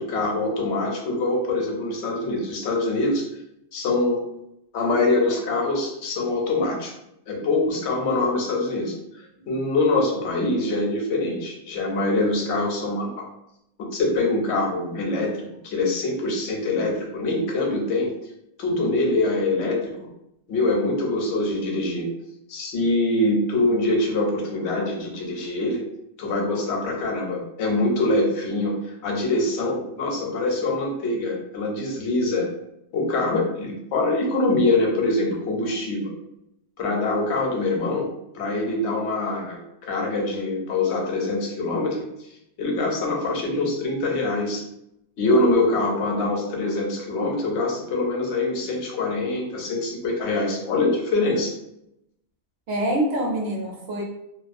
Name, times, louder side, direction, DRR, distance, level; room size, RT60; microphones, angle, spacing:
voice 1, 0.0-3.2 3.7-4.2 4.7-6.9 7.3-8.9 9.5-13.1 13.8-18.1 18.6-20.1 20.5-22.1 22.5-25.8 26.2-32.5 32.9-36.0 36.8-38.1 38.3-42.0 42.6-44.6 45.2-51.5, left 2 dB, 70° left, 0 dB, 0.9 m, -24 dB
voice 2, 52.7-54.0, right 1 dB, 65° right, -1 dB, 0.8 m, -26 dB
2.3 x 2.2 x 2.5 m, 0.82 s
omnidirectional pair, 1.2 m